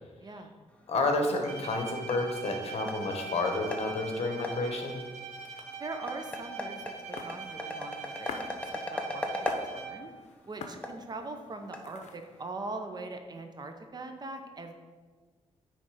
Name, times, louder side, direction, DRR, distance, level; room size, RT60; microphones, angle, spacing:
voice 1, 0.2-0.5 5.8-8.4 8.7-9.2 9.6-10.1 10.5-14.7, right 3 dB, 35° right, 5 dB, 0.7 m, -41 dB
sound 1, 0.7-12.5, left 1 dB, 10° left, 0.8 m, -40 dB
voice 2, 0.9-5.0, left 2 dB, 60° left, 3 dB, 1.2 m, -30 dB
Bowed string instrument, 1.4-10.2, right 5 dB, 85° right, 0.9 m, -42 dB
sound 2, 4.3-12.4, left 5 dB, 75° left, 0.7 m, -48 dB
9.5 x 3.4 x 4.9 m, 1.4 s
cardioid pair, 115°, 12 cm